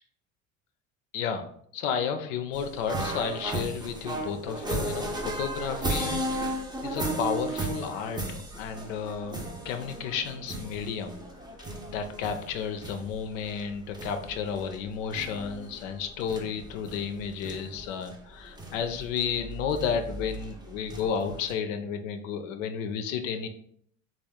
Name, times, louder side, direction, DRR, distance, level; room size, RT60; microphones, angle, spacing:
voice 1, 1.1-1.5 1.7-6.6 6.8-9.4 9.6-11.2 11.9-23.5, left 7 dB, 70° left, 7 dB, 0.6 m, -32 dB
sound 1, 2.5-21.5, right 1 dB, 10° right, 0.7 m, -36 dB
3.3 x 2.5 x 3.5 m, 0.63 s
hypercardioid pair, 65°, 41 cm